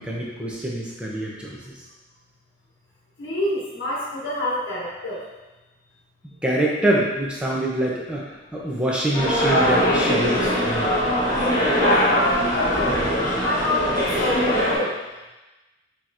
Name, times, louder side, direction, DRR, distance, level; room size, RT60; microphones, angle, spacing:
voice 1, 0.0-1.6 6.4-8.2 8.5-10.9, right 1 dB, 5° right, -4 dB, 0.6 m, -25 dB
voice 2, 3.2-5.2 11.8-14.9, left 1 dB, 80° left, -6 dB, 0.9 m, -27 dB
sound 1, 9.1-14.8, equal, 20° left, 1.2 m, -21 dB
6.1 x 3.0 x 2.6 m, 1.1 s
head